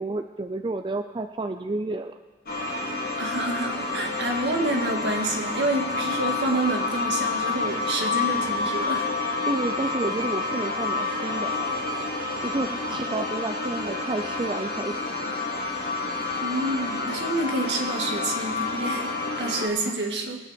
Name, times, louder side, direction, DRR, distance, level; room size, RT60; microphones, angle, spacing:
voice 1, 0.0-2.1 9.4-11.8 12.4-15.3 19.8-19.9, right 2 dB, 25° right, 6 dB, 0.4 m, -30 dB
sound 1, 2.5-19.7, left 3 dB, 55° left, 2.3 m, -29 dB
voice 2, 3.2-9.1 12.9-13.0 16.4-20.4, right 2 dB, 70° right, 2 dB, 1.9 m, -28 dB
20.5 x 9.0 x 4.4 m, 1.3 s
head